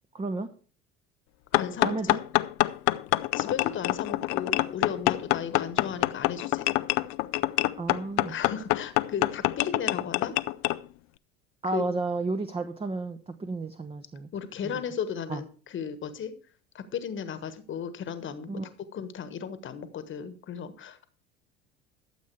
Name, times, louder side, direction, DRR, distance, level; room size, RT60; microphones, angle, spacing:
voice 1, 0.1-0.5 1.8-2.2 7.8-8.3 11.6-14.3 14.6-14.8 15.3-15.4 18.5-18.7, right 3 dB, 20° right, 8 dB, 0.9 m, -32 dB
sound 1, 1.5-10.8, left 20 dB, 55° left, 0.5 m, -26 dB
voice 2, 1.5-1.9 3.3-6.6 8.3-10.4 11.7-11.9 14.3-16.3 16.7-18.5 18.9-21.0, left 7 dB, 40° left, 12 dB, 1.3 m, -35 dB
12.5 x 7.4 x 4.6 m, 0.40 s
figure-of-eight pair, 65°, 32 cm